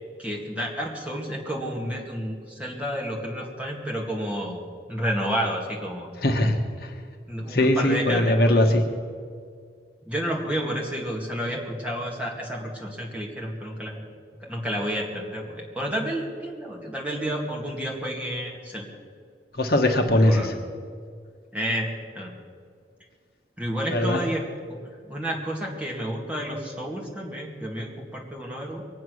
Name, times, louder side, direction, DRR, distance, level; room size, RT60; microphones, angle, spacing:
voice 1, 0.2-4.6 4.9-6.1 7.3-8.6 10.0-14.0 14.4-18.9 20.2-20.6 21.5-22.4 23.6-24.8 25.0-28.8, equal, 5° right, -2 dB, 2.2 m, -30 dB
voice 2, 6.2-6.9 7.5-8.8 19.6-20.4 23.9-24.2, left 1 dB, 55° left, 3 dB, 1.2 m, -20 dB
23.0 x 9.0 x 6.3 m, 2.1 s
head